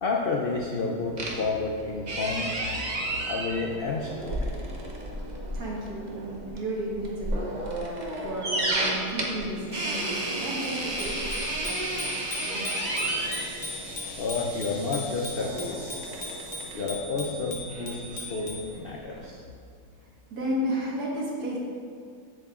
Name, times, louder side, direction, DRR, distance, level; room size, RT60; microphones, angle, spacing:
voice 1, 0.0-2.5 3.3-4.5 14.2-16.0 16.7-19.4, left 3 dB, 70° left, -1 dB, 0.5 m, -30 dB
sound 1, 1.2-19.3, right 1 dB, 40° right, 0.7 m, -33 dB
voice 2, 5.5-7.5 8.2-12.3 12.5-13.4 20.3-21.6, right 1 dB, 75° right, -4 dB, 1.9 m, -33 dB
sound 2, 9.7-16.9, left 1 dB, 85° left, 2.1 m, -45 dB
Bicycle bell, 10.6-18.7, left 2 dB, 45° left, 1.1 m, -39 dB
7.5 x 7.4 x 2.4 m, 2.2 s
omnidirectional pair, 1.6 m